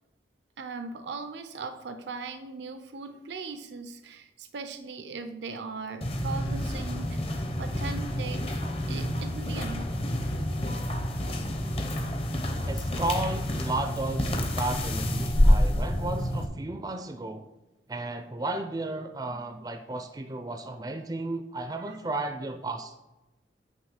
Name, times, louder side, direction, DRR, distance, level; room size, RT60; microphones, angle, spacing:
voice 1, 0.6-8.6 8.9-9.9 10.3-11.5 21.9-22.0, right 4 dB, 85° right, 8 dB, 0.5 m, -39 dB
sound 1, 6.0-16.5, equal, 35° left, 0.7 m, -28 dB
voice 2, 12.7-17.5 17.9-23.0, right 2 dB, 20° right, 6 dB, 0.4 m, -33 dB
8.8 x 3.1 x 5.6 m, 1.0 s
head